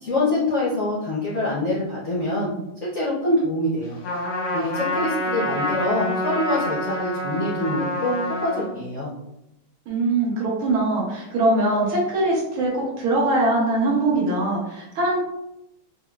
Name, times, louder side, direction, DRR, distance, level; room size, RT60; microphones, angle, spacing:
voice 1, 0.0-2.5 2.8-4.0 4.5-9.1, left 1 dB, 70° left, -8 dB, 0.6 m, -25 dB
Trumpet, 4.0-8.7, left 1 dB, 85° left, 1.8 m, -27 dB
voice 2, 9.9-15.2, right 2 dB, 80° right, -4 dB, 1.8 m, -22 dB
4.7 x 2.0 x 2.3 m, 0.87 s
omnidirectional pair, 2.3 m